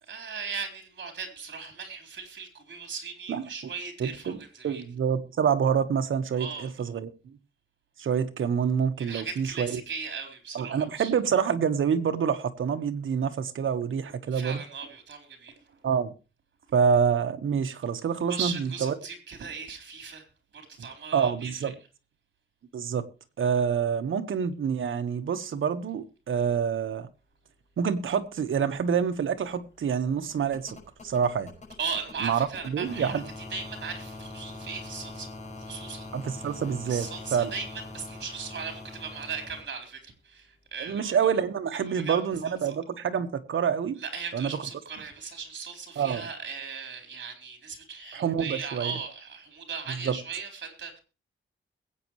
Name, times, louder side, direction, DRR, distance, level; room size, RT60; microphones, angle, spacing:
voice 1, 0.1-4.8 6.4-6.7 9.0-11.1 14.3-15.8 18.3-20.2 20.5-21.7 31.8-35.3 35.6-36.1 36.8-41.2 41.8-42.2 42.7-42.8 44.0-51.0, right 5 dB, 65° right, 4.0 m, -38 dB
voice 2, 4.0-7.1 8.0-9.8 10.5-14.6 15.8-16.1 16.7-18.9 21.1-21.7 22.7-23.1 23.4-27.1 27.8-31.5 32.2-33.2 36.1-37.5 40.8-44.0 44.3-44.6 46.0-46.2 48.1-48.9 49.9-50.2, right 7 dB, 80° right, 1.3 m, -27 dB
sound 1, 28.7-39.6 41.0-41.1, left 2 dB, 35° left, 6.0 m, -44 dB
21.5 x 8.7 x 3.1 m
wide cardioid pair, 150°, 20 cm